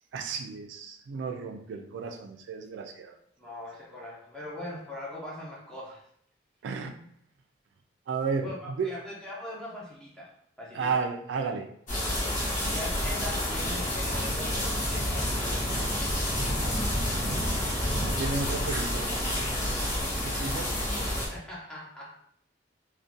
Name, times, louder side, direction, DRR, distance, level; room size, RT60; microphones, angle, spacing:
voice 1, 0.1-3.1 6.6-7.0 8.1-8.9 10.7-11.7 17.5-17.6 18.0-19.1 19.4-19.9 20.2-20.7, right 5 dB, 80° right, 4 dB, 0.3 m, -33 dB
voice 2, 3.4-6.1 8.4-10.3 10.6-10.9 12.7-15.9 21.3-22.1, left 1 dB, 5° left, -6 dB, 0.6 m, -41 dB
sound 1, 11.9-21.3, left 1 dB, 40° left, 0.8 m, -29 dB
2.4 x 2.1 x 2.6 m, 0.68 s
head